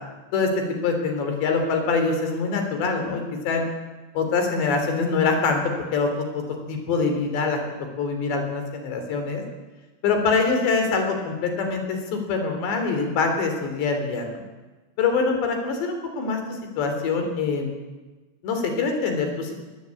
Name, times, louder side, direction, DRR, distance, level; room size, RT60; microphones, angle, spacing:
voice 1, 0.3-3.7 4.2-6.4 6.7-7.6 8.0-9.4 10.0-14.4 15.0-16.4 16.8-17.7 18.4-19.5, left 4 dB, 60° left, 5 dB, 5.7 m, -24 dB
22.5 x 19.0 x 8.7 m, 1.2 s
omnidirectional pair, 5.9 m